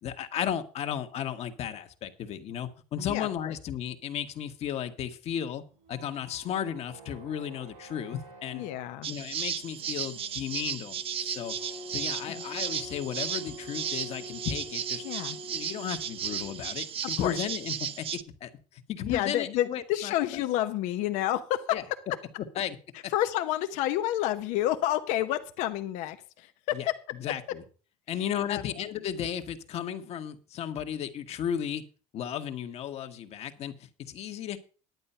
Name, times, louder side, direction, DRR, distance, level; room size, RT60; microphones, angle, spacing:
voice 1, 0.0-5.6 5.9-8.6 9.1-11.6 11.9-15.0 15.5-20.4 21.7-21.8 22.6-22.8 23.0-23.1 26.7-26.9 27.2-27.6 28.1-31.8 32.1-34.6, left 9 dB, 55° left, 7 dB, 1.4 m, -34 dB
voice 2, 3.1-3.5 8.5-9.1 12.3-12.4 15.0-15.4 17.2-17.4 19.1-21.8 23.1-26.9 28.5-28.7, left 13 dB, 80° left, 8 dB, 0.8 m, -29 dB
sound 1, 5.6-16.9, equal, 90° right, 6.7 m, -47 dB
sound 2, 9.0-18.2, right 8 dB, 50° right, 0.8 m, -35 dB
10.5 x 8.9 x 5.6 m, 0.38 s
cardioid pair, 105°, 12 cm